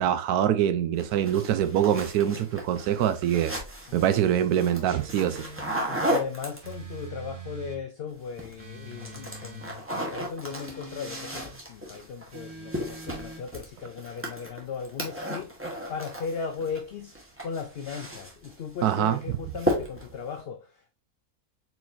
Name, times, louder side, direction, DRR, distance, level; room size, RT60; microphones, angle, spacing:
voice 1, 0.0-3.5 3.9-5.4 18.8-19.2, right 10 dB, 85° right, 1.1 m, -24 dB
sound 1, 1.0-7.0 8.2-8.6 8.9-16.8 17.1-18.6 18.9-19.2 19.6-20.2, equal, 10° right, 1.0 m, -34 dB
voice 2, 3.9-4.2 5.9-15.5 15.9-17.2 17.4-21.0, left 6 dB, 85° left, 0.5 m, -37 dB
sound 2, 4.9-5.9 6.6-7.8 8.6-9.8 10.5-11.5 12.3-13.4, right 3 dB, 50° right, 1.6 m, -43 dB
4.5 x 4.0 x 2.6 m
omnidirectional pair, 1.6 m